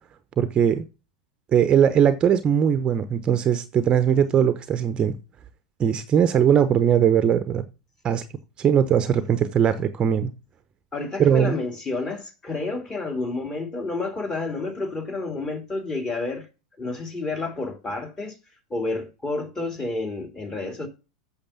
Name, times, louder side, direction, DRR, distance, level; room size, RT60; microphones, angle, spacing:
voice 1, 0.4-0.8 1.5-5.2 5.8-7.7 8.0-8.3 8.6-10.3 11.2-11.6, right 8 dB, 25° right, 0.9 m, -20 dB
voice 2, 10.9-16.5 16.8-18.4 18.7-20.9, left 3 dB, 20° left, 2.8 m, -30 dB
8.7 x 6.6 x 7.4 m
figure-of-eight pair, 90°, 3 cm